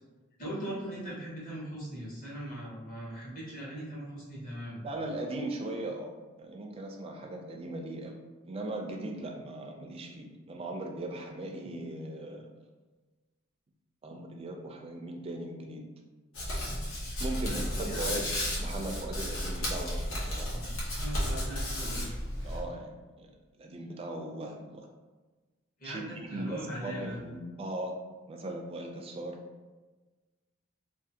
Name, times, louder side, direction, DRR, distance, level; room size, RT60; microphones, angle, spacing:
voice 1, 0.4-4.8 17.4-18.2 20.5-22.1 25.8-27.2, right 1 dB, 45° left, -6 dB, 0.9 m, -40 dB
voice 2, 4.8-6.1 6.4-8.1 8.4-12.5 14.0-15.8 17.2-18.3 18.6-20.6 22.4-22.9 23.2-23.3 23.6-24.9 25.8-26.0 26.3-27.9 28.3-29.4, right 1 dB, 30° right, 2 dB, 0.3 m, -38 dB
Hands, 16.3-22.6, equal, 75° left, 0.8 m, -33 dB
2.5 x 2.4 x 2.7 m, 1.3 s
head